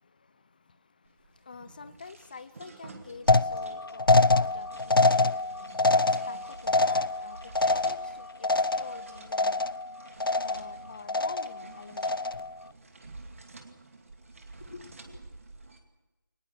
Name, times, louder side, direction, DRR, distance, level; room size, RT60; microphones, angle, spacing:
voice 1, 0.0-9.8 10.4-12.2 14.6-15.2, left 4 dB, 25° left, 0.7 m, -48 dB
sound 1, 1.0-15.8, right 3 dB, 40° right, 2.4 m, -50 dB
sound 2, 3.3-9.1 9.3-9.9 10.2-10.8 11.1-11.6 12.0-12.5, left 3 dB, 80° left, 0.7 m, -25 dB
24.5 x 19.5 x 6.2 m
figure-of-eight pair, 165°, 12 cm